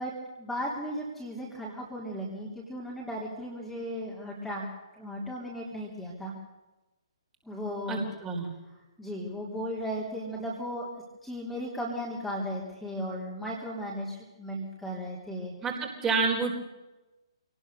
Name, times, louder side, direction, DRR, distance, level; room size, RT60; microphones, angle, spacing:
voice 1, 0.0-6.3 7.4-8.0 9.0-15.5, equal, ahead, -4 dB, 3.5 m, -36 dB
voice 2, 7.9-8.5 15.6-16.5, right 4 dB, 15° right, 1 dB, 4.2 m, -28 dB
26.5 x 19.0 x 6.7 m, 1.1 s
figure-of-eight pair, 130°, 3 cm